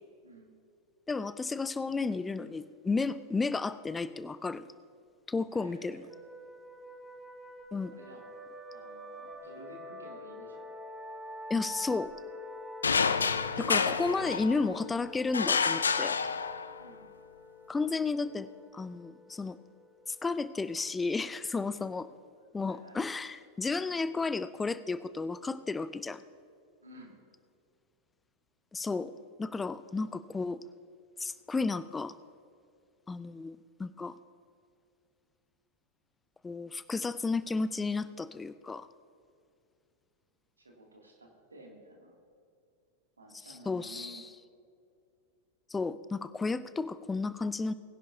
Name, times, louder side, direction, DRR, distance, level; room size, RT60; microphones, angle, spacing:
voice 1, 1.1-4.7 5.3-6.1 7.7-7.9 11.5-12.1 13.6-16.2 17.7-19.6 20.1-22.1 22.5-26.2 28.7-29.1 29.4-30.6 31.2-32.1 33.1-34.2 36.4-38.9 43.5-44.3 45.7-47.7, left 4 dB, 10° left, 15 dB, 0.4 m, -33 dB
voice 2, 5.5-6.1 7.9-8.3 8.7-10.7 16.8-17.1 21.8-22.1 22.6-23.0 26.8-27.2 40.6-42.2 43.2-44.2, right 1 dB, 75° right, 0 dB, 2.4 m, -52 dB
sound 1, 6.1-21.4, left 1 dB, 15° right, 3.0 m, -47 dB
sound 2, 12.8-14.8 15.3-16.9, left 5 dB, 75° left, 0.4 m, -29 dB
22.0 x 10.5 x 2.7 m, 2.4 s
figure-of-eight pair, 90°, 0 cm